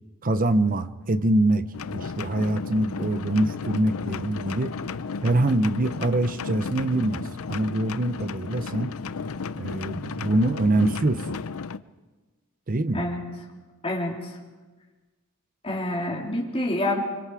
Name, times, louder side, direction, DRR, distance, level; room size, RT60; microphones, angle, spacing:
voice 1, 0.2-1.7 1.9-4.7 5.2-8.9 9.6-11.4 12.7-13.1, right 1 dB, 40° right, 13 dB, 0.8 m, -24 dB
sound 1, 1.7-11.8, left 5 dB, 85° left, 0.6 m, -34 dB
voice 2, 13.8-14.4 15.6-17.0, left 1 dB, 25° left, -1 dB, 3.5 m, -27 dB
25.5 x 24.5 x 4.9 m, 1.2 s
head